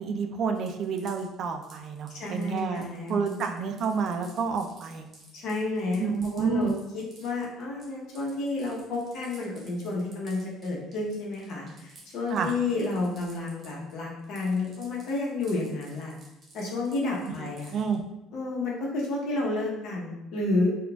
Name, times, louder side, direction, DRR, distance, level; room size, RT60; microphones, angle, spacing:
voice 1, 0.0-5.1 6.0-6.7 12.3-12.5 17.4-18.0, right 5 dB, 55° right, 6 dB, 0.3 m, -29 dB
sound 1, 0.5-13.9 14.2-17.9, right 2 dB, 35° right, 0.9 m, -54 dB
voice 2, 2.1-3.4 5.3-16.2 16.5-17.7 18.3-20.7, left 2 dB, 65° left, -3 dB, 0.8 m, -31 dB
3.8 x 2.3 x 2.3 m, 0.94 s
cardioid pair, 115°, 0 cm